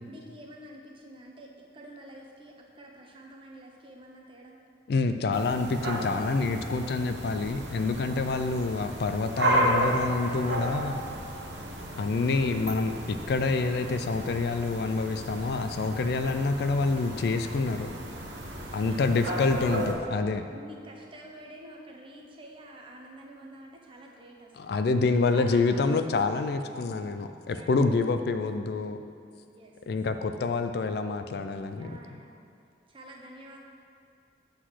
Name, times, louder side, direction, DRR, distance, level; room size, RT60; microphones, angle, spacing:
voice 1, 0.0-4.6 18.6-19.9 20.5-24.7 25.3-26.2 27.5-28.1 29.5-30.0 31.8-32.4 32.9-33.6, right 1 dB, 25° right, 0 dB, 0.8 m, -48 dB
voice 2, 4.9-11.0 12.0-17.9 18.7-20.5 24.6-29.0 29.9-32.0, left 3 dB, 55° left, 8 dB, 0.3 m, -27 dB
sound 1, 5.3-19.9, right 1 dB, 70° right, 1.0 m, -33 dB
8.1 x 3.9 x 6.2 m, 2.4 s
head